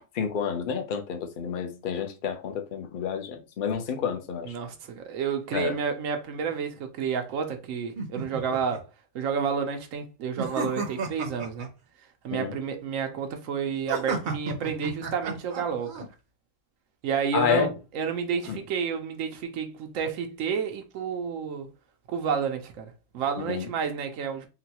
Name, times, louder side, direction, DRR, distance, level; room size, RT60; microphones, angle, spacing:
voice 1, 0.1-4.5 5.5-5.7 12.3-12.5 17.3-17.7 18.5-18.6 23.4-23.7, left 7 dB, 55° left, 0.6 m, -29 dB
voice 2, 4.4-8.8 9.1-11.7 12.2-16.1 17.0-21.7 22.1-24.5, right 6 dB, 90° right, 1.0 m, -30 dB
sound 1, 8.0-8.8 10.4-11.7 13.9-16.0, right 4 dB, 50° right, 0.7 m, -32 dB
3.9 x 2.2 x 2.8 m
omnidirectional pair, 1.3 m